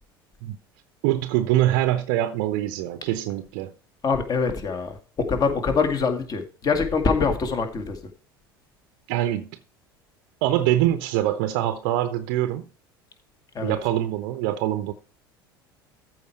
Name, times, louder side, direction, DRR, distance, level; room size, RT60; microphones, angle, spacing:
voice 1, 1.0-3.7 9.1-9.5 10.4-12.6 13.6-14.9, right 13 dB, 55° right, 0.7 m, -24 dB
voice 2, 4.0-8.0 13.5-13.7, left 5 dB, 30° left, 2.0 m, -24 dB
14.0 x 4.8 x 4.5 m
figure-of-eight pair, 70°, 12 cm